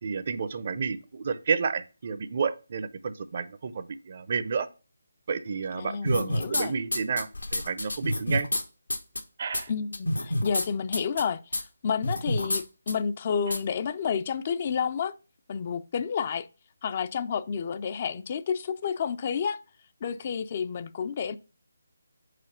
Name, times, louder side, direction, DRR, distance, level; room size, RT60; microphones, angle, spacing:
voice 1, 0.0-4.7 5.3-8.5 9.4-9.7 13.5-13.6, right 5 dB, 45° right, 0.6 m, -30 dB
voice 2, 5.7-6.7 9.7-15.1 15.5-16.5 16.8-19.6 20.0-21.4, left 6 dB, 35° left, 0.4 m, -30 dB
sound 1, 6.1-6.6 6.9-8.6 8.9-9.2 9.5-9.6 9.9-10.6 10.9-11.2 11.5-11.6 12.0-12.6 12.9-13.0 13.5-13.6, left 1 dB, 85° left, 1.2 m, -28 dB
5.0 x 4.3 x 5.6 m
figure-of-eight pair, 155°, 0 cm